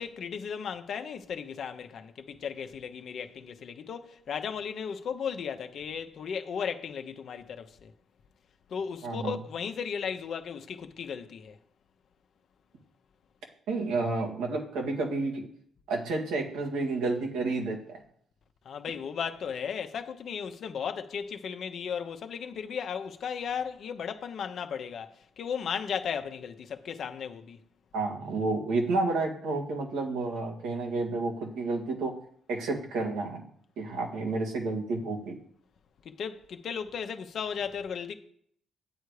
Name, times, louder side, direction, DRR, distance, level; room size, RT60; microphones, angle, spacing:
voice 1, 0.0-7.9 8.7-11.6 18.6-27.6 36.0-38.1, left 7 dB, 60° left, 0.9 m, -35 dB
voice 2, 9.0-9.3 13.7-15.5 15.9-18.0 27.9-32.1 32.5-33.4 33.8-35.4, right 3 dB, 90° right, 1.9 m, -30 dB
8.9 x 8.1 x 4.9 m
cardioid pair, 90°, 0 cm